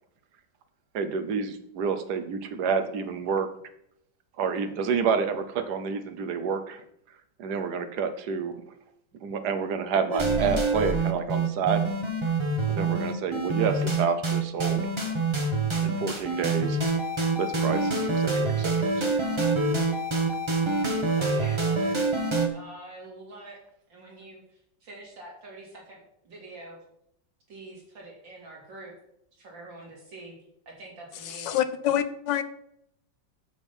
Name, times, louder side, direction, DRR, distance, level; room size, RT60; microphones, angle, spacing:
voice 1, 0.9-3.5 4.4-6.8 7.4-8.6 9.2-11.9 12.7-14.9 15.8-16.8 17.4-19.4 20.8-20.9, right 6 dB, 65° right, 9 dB, 1.4 m, -29 dB
sound 1, 10.1-22.5, right 3 dB, 20° right, 0.9 m, -26 dB
voice 2, 21.2-22.0 22.5-23.6 23.9-26.8 27.5-28.9 29.3-30.4 30.7-31.6, right 2 dB, 80° right, -2 dB, 3.7 m, -45 dB
voice 3, 31.3-32.4, left 11 dB, 75° left, 11 dB, 1.4 m, -26 dB
7.6 x 7.1 x 5.5 m, 0.74 s
omnidirectional pair, 2.0 m